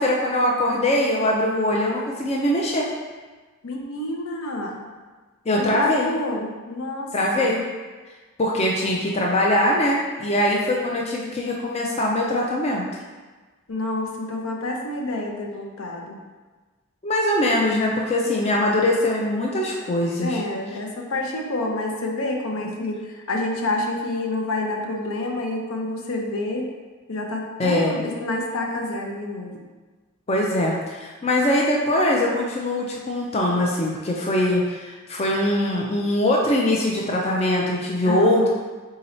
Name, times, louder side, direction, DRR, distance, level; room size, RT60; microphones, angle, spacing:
voice 1, 0.0-2.9 5.5-6.1 7.1-7.6 8.4-12.8 17.0-20.4 27.6-28.1 30.3-38.5, left 1 dB, 30° left, -2 dB, 0.4 m, -22 dB
voice 2, 3.6-4.9 5.6-7.5 13.7-16.2 20.2-26.7 27.1-29.6 38.1-38.5, left 2 dB, 80° left, 1 dB, 0.6 m, -28 dB
3.7 x 2.8 x 4.2 m, 1.3 s
head